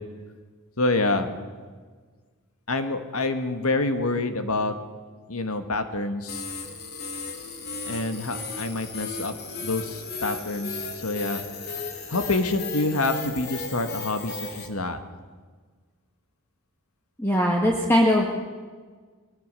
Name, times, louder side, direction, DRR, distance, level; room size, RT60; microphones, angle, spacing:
voice 1, 0.8-1.4 2.7-4.8 5.3-6.5 7.8-11.4 12.1-15.0, left 2 dB, 85° left, 8 dB, 1.8 m, -27 dB
sound 1, 6.3-14.7, left 4 dB, 45° left, 2.6 m, -35 dB
voice 2, 17.2-18.3, equal, 10° left, -1 dB, 1.6 m, -20 dB
20.5 x 20.5 x 6.8 m, 1.5 s
head